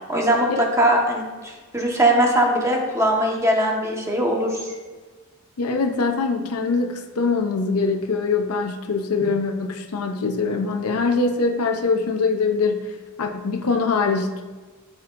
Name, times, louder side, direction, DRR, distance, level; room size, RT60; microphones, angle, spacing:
voice 1, 0.1-4.7, right 1 dB, 15° right, -1 dB, 1.3 m, -20 dB
voice 2, 5.6-14.4, left 4 dB, 85° left, 4 dB, 0.7 m, -23 dB
13.0 x 6.0 x 2.6 m, 1.3 s
head